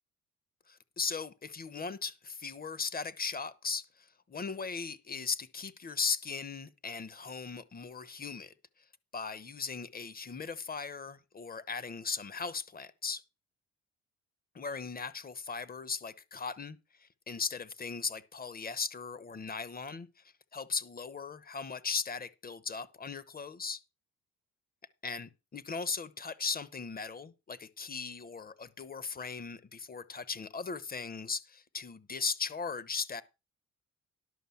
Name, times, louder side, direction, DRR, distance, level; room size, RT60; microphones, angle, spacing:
voice 1, 0.7-8.5 9.1-13.2 14.5-20.1 20.5-23.8 25.0-33.2, left 5 dB, 30° left, 1.0 m, -38 dB
11.0 x 5.2 x 7.1 m
cardioid pair, 90°, 30 cm